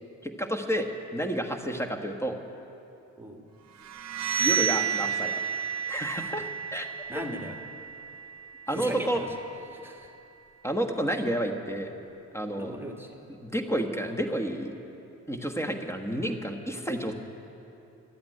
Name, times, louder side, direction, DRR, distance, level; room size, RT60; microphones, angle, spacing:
voice 1, 0.2-2.3 4.4-5.3 5.9-6.9 7.1-7.2 8.7-9.2 10.6-11.9 12.3-12.7 13.4-14.7 15.3-17.1, right 1 dB, 10° left, 4 dB, 1.4 m, -30 dB
sound 1, 3.8-9.5, right 7 dB, 60° right, 0.9 m, -31 dB
voice 2, 7.1-7.5 8.7-9.3 9.7-10.1 12.6-13.2, equal, 5° right, 1 dB, 1.6 m, -38 dB
13.0 x 8.6 x 9.8 m, 2.7 s
cardioid pair, 75°, 30 cm